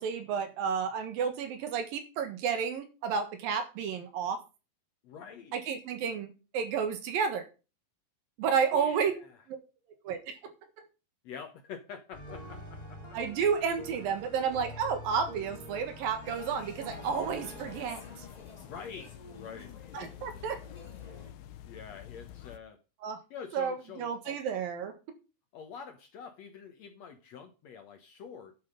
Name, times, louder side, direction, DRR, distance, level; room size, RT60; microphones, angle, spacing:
voice 1, 0.0-4.4 5.5-7.5 8.4-9.1 10.0-10.9 13.1-18.3 19.9-20.6 23.0-23.2 23.5-24.9, right 6 dB, 75° right, 8 dB, 3.3 m, -31 dB
voice 2, 5.0-5.5 8.7-9.4 11.2-13.0 18.6-19.8 21.7-22.8 23.3-24.4 25.5-28.6, left 6 dB, 65° left, 6 dB, 1.8 m, -46 dB
sound 1, 12.1-17.8, equal, 25° left, 4.7 m, -46 dB
sound 2, 16.2-21.3, left 3 dB, 45° left, 0.5 m, -50 dB
sound 3, 16.8-22.6, left 11 dB, 80° left, 2.6 m, -48 dB
10.5 x 7.7 x 5.3 m, 0.31 s
omnidirectional pair, 4.2 m